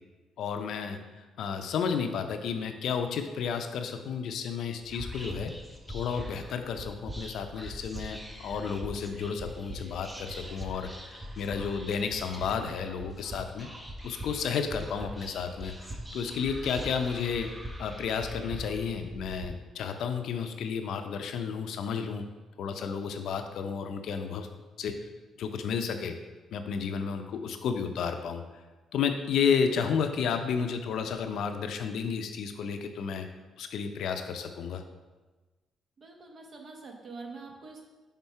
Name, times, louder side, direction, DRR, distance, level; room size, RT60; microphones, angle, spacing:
voice 1, 0.4-5.5 5.9-13.7 14.0-17.5 17.8-22.2 22.6-24.5 24.8-24.9 25.4-26.2 26.5-28.4 28.9-33.3 33.6-34.8, left 6 dB, 75° left, 7 dB, 0.5 m, -32 dB
Whispering, 4.8-19.5, right 1 dB, 15° right, 0.7 m, -42 dB
voice 2, 36.0-37.8, right 3 dB, 50° right, 2 dB, 1.1 m, -45 dB
5.6 x 3.7 x 4.7 m, 1.2 s
cardioid pair, 90°, 0 cm